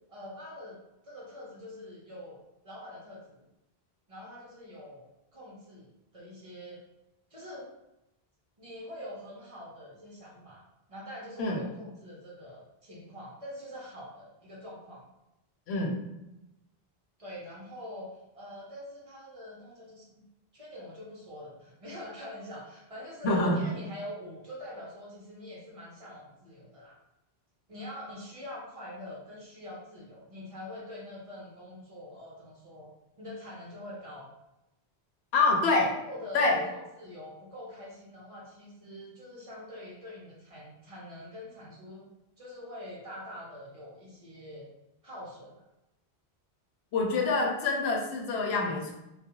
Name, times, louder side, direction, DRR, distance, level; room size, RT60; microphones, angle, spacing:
voice 1, 0.1-3.5 4.1-5.1 5.3-6.8 7.3-7.7 8.6-10.6 10.9-15.0 17.2-18.1 18.3-20.2 20.5-27.0 27.7-32.9 33.2-34.3 36.0-42.1 42.4-44.7 45.0-45.5, left 1 dB, 40° right, -5 dB, 0.6 m, -44 dB
voice 2, 15.7-16.0 23.2-23.7 35.3-36.0 36.3-36.6 46.9-48.9, left 3 dB, 85° left, 0 dB, 0.8 m, -26 dB
2.3 x 2.2 x 2.9 m, 0.92 s
omnidirectional pair, 1.1 m